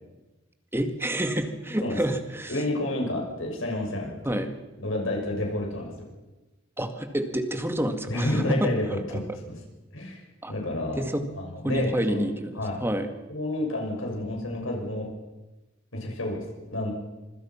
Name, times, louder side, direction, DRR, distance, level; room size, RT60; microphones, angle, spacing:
voice 1, 0.7-2.5 4.3-4.5 6.8-9.2 10.4-10.5 11.0-11.2 11.6-13.1, right 1 dB, 10° right, 7 dB, 2.1 m, -28 dB
voice 2, 2.5-4.4 4.8-6.1 8.1-9.5 9.9-10.2 10.5-11.0 11.3-12.2 12.5-12.8 13.3-15.1 15.9-16.9, left 1 dB, 85° left, 0 dB, 6.5 m, -30 dB
25.5 x 24.5 x 6.0 m, 1.1 s
head